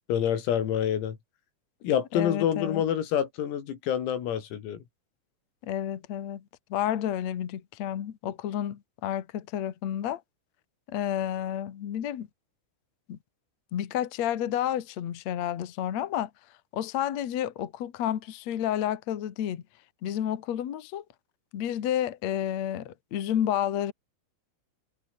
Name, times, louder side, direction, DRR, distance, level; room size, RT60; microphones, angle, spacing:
voice 1, 0.1-1.2 1.8-4.8, left 9 dB, 90° left, 6.1 m, -27 dB
voice 2, 2.1-2.8 5.6-6.4 6.7-10.2 10.9-12.3 13.1-13.2 13.7-16.3 16.7-19.6 20.0-21.0 21.5-23.9, left 11 dB, 60° left, 1.8 m, -30 dB
omnidirectional pair, 5.9 m